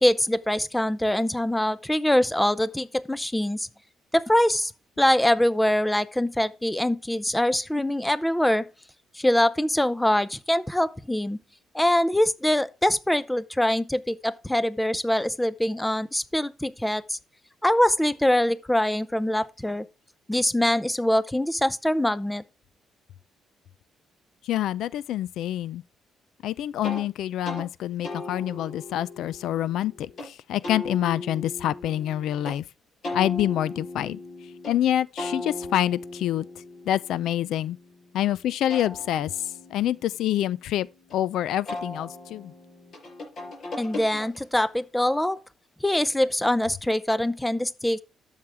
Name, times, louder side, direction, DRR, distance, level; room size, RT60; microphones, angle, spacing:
voice 1, 0.0-3.7 4.1-4.7 5.0-8.6 9.1-11.4 11.7-17.2 17.6-19.9 20.3-22.4 43.8-45.4 45.8-48.0, left 1 dB, 5° left, 0.6 m, -23 dB
voice 2, 24.4-25.8 26.4-32.6 33.1-34.2 34.7-36.5 36.9-37.8 38.1-40.9 41.1-42.5, left 12 dB, 75° left, 0.4 m, -26 dB
sound 1, 26.8-27.0 27.4-27.7 28.0-30.3 30.6-32.6 33.0-34.8 35.2-38.0 38.5-41.1 41.7-44.7, left 2 dB, 50° left, 6.0 m, -38 dB
12.5 x 7.4 x 3.5 m
cardioid pair, 135°, 0 cm